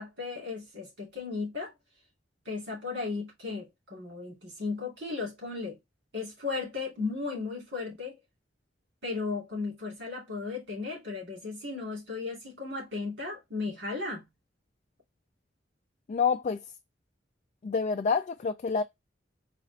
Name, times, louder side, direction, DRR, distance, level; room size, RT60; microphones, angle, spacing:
voice 1, 0.0-1.7 2.4-5.8 6.1-8.2 9.0-14.2, left 4 dB, 70° right, 2.5 m, -35 dB
voice 2, 16.1-16.6 17.6-18.8, left 5 dB, 40° left, 0.3 m, -27 dB
4.1 x 2.5 x 3.8 m
head